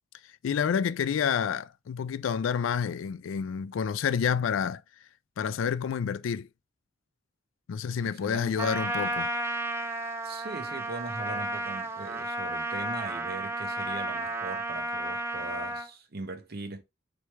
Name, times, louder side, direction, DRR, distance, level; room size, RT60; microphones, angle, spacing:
voice 1, 0.2-4.8 5.4-6.5 7.7-9.3, left 7 dB, 70° left, 0.3 m, -29 dB
voice 2, 8.0-8.8 10.2-16.8, right 3 dB, 50° right, 0.7 m, -40 dB
Trumpet, 8.6-15.9, right 2 dB, 10° right, 0.5 m, -32 dB
3.2 x 3.2 x 4.4 m
head